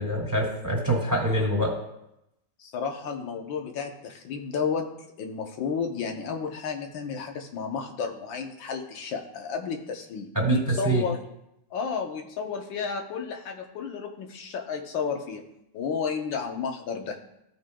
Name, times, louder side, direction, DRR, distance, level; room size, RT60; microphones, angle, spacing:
voice 1, 0.0-1.7 10.4-11.0, right 2 dB, 10° right, -4 dB, 2.2 m, -25 dB
voice 2, 2.6-4.9 5.2-11.2 11.7-15.4 15.7-17.2, left 6 dB, 80° left, 3 dB, 1.7 m, -32 dB
16.0 x 5.4 x 2.3 m, 0.85 s
omnidirectional pair, 2.1 m